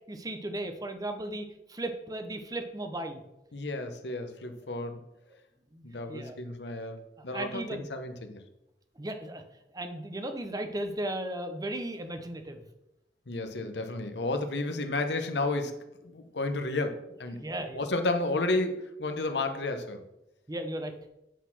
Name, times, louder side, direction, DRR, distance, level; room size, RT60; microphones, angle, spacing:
voice 1, 0.1-3.2 5.7-6.4 7.3-7.8 9.0-9.4 9.7-12.6 17.4-17.8 20.5-20.9, right 1 dB, 20° right, 7 dB, 0.8 m, -36 dB
voice 2, 3.5-5.0 5.8-8.4 13.3-17.4 17.7-20.0, left 2 dB, 75° left, 7 dB, 1.0 m, -32 dB
8.3 x 4.1 x 6.0 m, 0.89 s
head